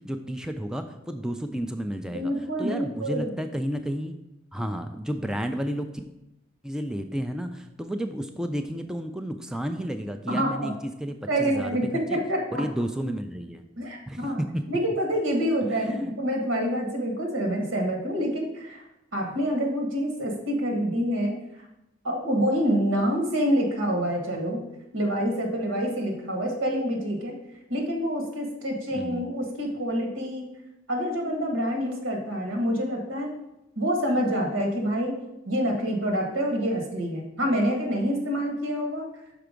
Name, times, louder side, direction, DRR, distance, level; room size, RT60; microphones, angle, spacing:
voice 1, 0.0-2.3 2.6-4.2 4.5-5.9 6.6-12.2 12.5-13.6 14.1-14.6 15.8-16.1 28.9-29.2, equal, 5° right, 6 dB, 0.3 m, -32 dB
voice 2, 2.1-3.3 10.3-10.7 11.3-12.6 13.8-14.4 14.7-18.8 19.1-21.3 22.0-24.6 24.9-27.3 27.7-30.5 30.9-33.3 33.7-35.1 35.4-39.0, equal, 90° right, 1 dB, 1.6 m, -27 dB
5.9 x 4.6 x 5.0 m, 0.90 s
head